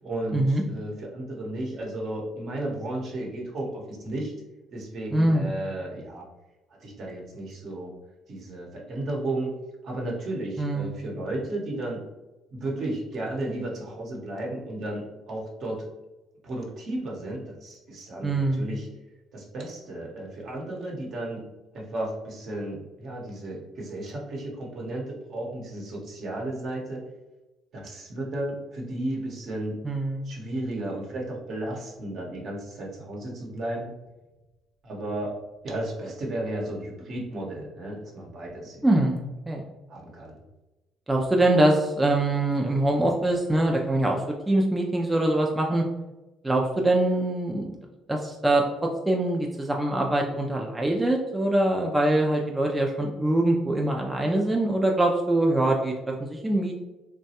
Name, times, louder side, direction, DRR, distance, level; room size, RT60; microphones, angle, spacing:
voice 1, 0.0-4.3 4.7-6.3 6.8-7.9 8.3-9.5 9.8-12.1 12.5-15.9 16.4-18.9 19.3-21.5 21.7-27.0 27.7-29.8 30.2-33.9 34.8-35.4 35.6-38.9 39.9-40.4, right 1 dB, 55° right, -1 dB, 0.9 m, -33 dB
voice 2, 5.1-5.5 10.6-11.0 18.2-18.7 29.8-30.3 38.8-39.6 41.1-45.8 46.4-47.8 48.1-56.8, right 1 dB, 15° right, 0 dB, 0.3 m, -24 dB
3.0 x 2.2 x 2.8 m, 1.1 s
cardioid pair, 90°, 0 cm